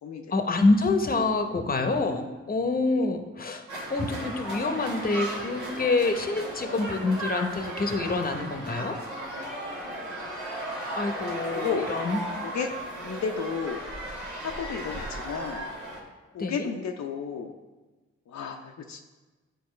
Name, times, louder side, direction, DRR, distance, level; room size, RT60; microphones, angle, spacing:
voice 1, 0.3-3.6 3.9-9.0 11.0-12.2 16.4-16.7, left 3 dB, 30° left, 6 dB, 0.8 m, -26 dB
sound 1, 3.7-16.0, right 1 dB, 80° right, 1.5 m, -36 dB
voice 2, 11.5-11.9 12.4-12.7 13.0-13.8 14.4-15.7 16.3-17.5 18.3-19.0, left 6 dB, 70° left, 3 dB, 0.5 m, -33 dB
9.3 x 4.1 x 3.2 m, 1.2 s
cardioid pair, 60°, 29 cm